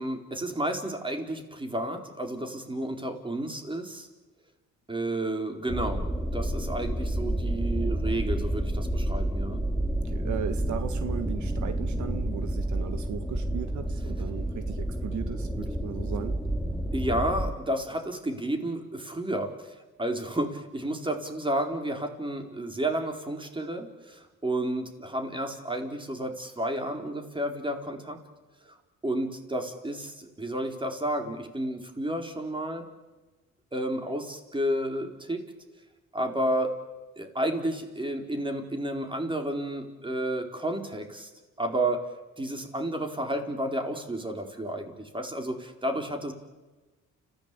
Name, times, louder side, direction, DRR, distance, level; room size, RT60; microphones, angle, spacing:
voice 1, 0.0-4.1 4.9-9.6 16.9-28.2 28.7-28.8 29.0-32.8 33.7-35.4 36.1-36.7 37.2-41.3 41.6-42.0 42.4-46.3, right 1 dB, 15° right, 4 dB, 4.4 m, -31 dB
sound 1, 5.7-17.5, right 1 dB, ahead, 2.5 m, -30 dB
voice 2, 10.0-16.4, right 9 dB, 75° right, 10 dB, 1.6 m, -37 dB
30.0 x 16.0 x 8.7 m, 1.2 s
cardioid pair, 90°, 30 cm